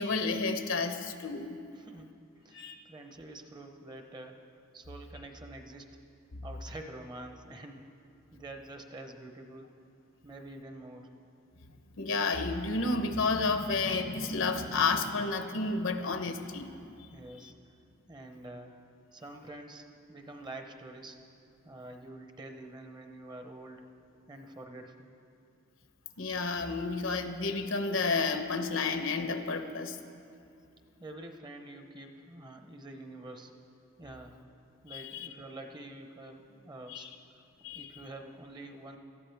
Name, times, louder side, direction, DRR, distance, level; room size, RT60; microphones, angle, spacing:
voice 1, 0.0-1.6 2.5-2.8 6.3-6.4 12.0-16.7 26.2-30.0 34.9-35.3 36.9-37.1 37.6-37.9, left 3 dB, 70° left, 7 dB, 0.9 m, -31 dB
voice 2, 1.7-4.4 4.7-5.9 6.4-7.9 8.3-9.8 10.2-11.1 17.1-17.5 18.1-18.7 19.1-21.2 21.6-23.9 24.3-25.1 31.0-33.5 34.0-34.4 34.8-37.1 37.3-37.4 37.7-39.0, right 2 dB, 20° right, 5 dB, 0.8 m, -47 dB
18.0 x 13.5 x 3.5 m, 2.6 s
head